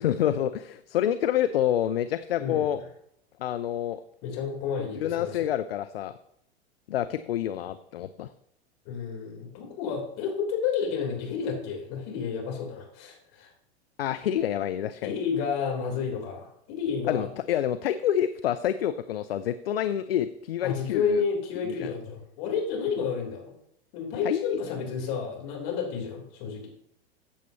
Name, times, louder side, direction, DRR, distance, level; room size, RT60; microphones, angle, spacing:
voice 1, 0.0-2.8 3.4-4.0 4.8-6.1 6.9-8.3 14.0-15.2 17.1-21.2 21.6-21.9 24.2-24.6, left 10 dB, 65° left, 12 dB, 0.5 m, -28 dB
voice 2, 2.4-2.8 4.2-5.5 8.9-13.5 15.0-17.3 20.6-23.5 23.9-26.7, left 6 dB, 45° left, -1 dB, 3.6 m, -31 dB
14.0 x 7.3 x 2.9 m, 0.73 s
figure-of-eight pair, 90°, 32 cm